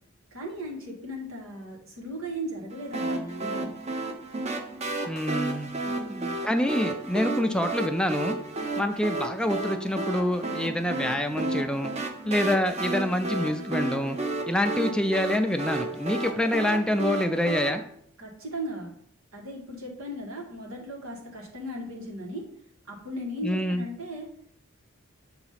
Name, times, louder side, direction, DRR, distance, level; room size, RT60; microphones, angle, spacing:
voice 1, 0.3-3.7 5.8-6.3 8.6-8.9 18.2-18.9 19.3-22.5 22.9-24.3, equal, 85° right, -1 dB, 1.8 m, -37 dB
sound 1, 2.9-17.7, right 2 dB, 30° right, 0.7 m, -32 dB
voice 2, 5.1-5.7 6.5-8.4 8.8-11.9 12.2-14.2 14.5-17.8 23.4-23.8, left 1 dB, 5° left, 7 dB, 0.4 m, -26 dB
7.1 x 2.9 x 5.7 m, 0.66 s
head